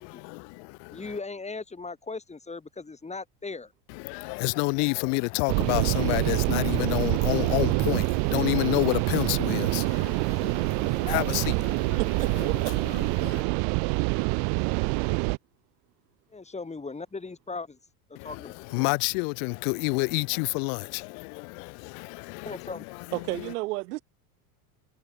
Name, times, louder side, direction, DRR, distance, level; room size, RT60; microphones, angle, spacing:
voice 1, 0.0-1.2 3.9-12.0 12.3-13.4 18.2-23.5, left 40 dB or more, 65° left, 1.1 m, -30 dB
voice 2, 0.9-3.7 10.2-10.5 11.0-11.4 16.3-17.8 18.2-18.9 22.4-22.9, left 4 dB, 15° left, 5.1 m, -38 dB
sound 1, 5.5-15.4, right 39 dB, 55° right, 0.5 m, -26 dB
voice 3, 12.0-12.8 13.2-13.4 23.1-24.0, right 20 dB, 80° right, 1.9 m, -32 dB
supercardioid pair, 110°, 46 cm